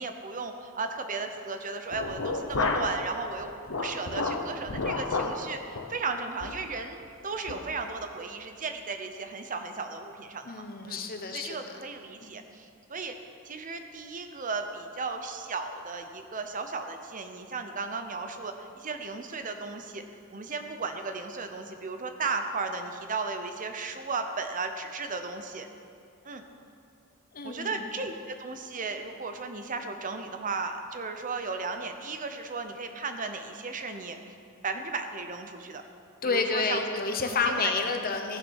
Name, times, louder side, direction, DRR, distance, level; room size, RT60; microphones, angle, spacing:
voice 1, 0.0-7.0 7.2-11.0 11.3-13.1 13.5-20.0 20.3-25.7 26.2-26.4 27.4-34.2 34.6-35.8 36.2-36.8 37.2-37.8, right 4 dB, 40° right, 6 dB, 0.8 m, -35 dB
sound 1, 1.9-3.0 3.4-5.4 5.7-5.9 6.4-6.6 7.0-7.1 7.5-7.7, left 3 dB, 75° left, 1.0 m, -31 dB
voice 2, 10.4-11.8 12.2-12.3 27.3-27.9 36.2-38.4, left 4 dB, 45° left, 5 dB, 1.0 m, -30 dB
15.0 x 7.1 x 6.5 m, 2.4 s
head